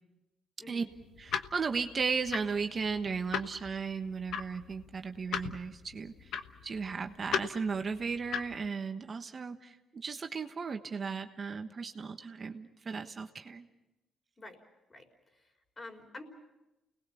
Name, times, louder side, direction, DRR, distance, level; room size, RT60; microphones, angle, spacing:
voice 1, 0.6-0.9 14.4-14.6 14.9-16.2, left 2 dB, 30° left, 4 dB, 4.9 m, -49 dB
sound 1, 0.9-8.7, left 8 dB, 75° left, 1.2 m, -39 dB
voice 2, 1.2-6.4 6.6-13.7, right 5 dB, 40° right, 6 dB, 1.2 m, -35 dB
29.5 x 20.0 x 7.0 m, 1.0 s
cardioid pair, 90°, 0 cm